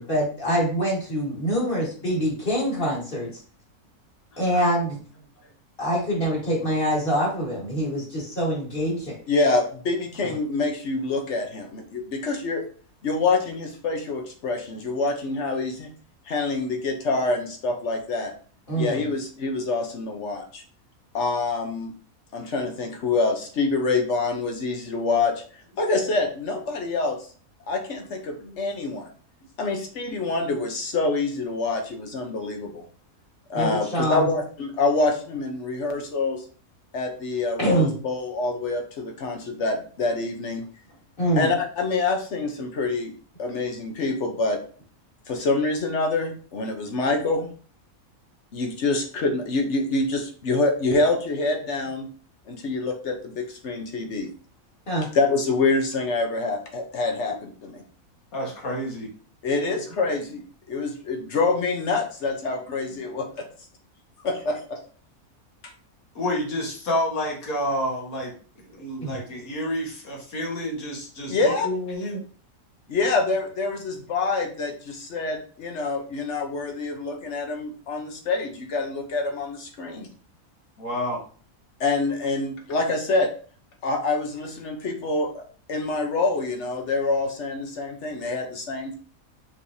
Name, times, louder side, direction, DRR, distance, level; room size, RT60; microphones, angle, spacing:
voice 1, 0.0-3.3 4.4-5.0 5.8-9.2 10.2-10.3 18.7-19.1 33.5-34.3 37.6-37.9 41.2-41.5 54.9-55.1 69.0-69.1, equal, 35° left, -4 dB, 2.0 m, -25 dB
voice 2, 9.3-12.6 13.0-15.9 16.3-18.3 18.8-20.6 21.1-21.9 22.3-25.3 25.8-27.2 27.7-29.1 29.6-32.8 33.5-36.4 36.9-40.6 41.4-43.1 43.4-44.6 45.3-47.5 48.5-52.1 52.5-54.3 55.1-57.8 59.4-60.4 60.7-63.5 64.2-64.8 65.6-65.7 71.3-71.7 72.9-80.1 81.8-83.3 83.8-85.4 85.7-88.9, left 3 dB, 55° left, 4 dB, 1.1 m, -26 dB
voice 3, 58.3-59.1 59.7-59.8 66.2-68.3 68.6-72.2 80.8-81.2, left 1 dB, 75° left, -1 dB, 1.9 m, -29 dB
5.6 x 3.2 x 2.7 m, 0.41 s
omnidirectional pair, 1.5 m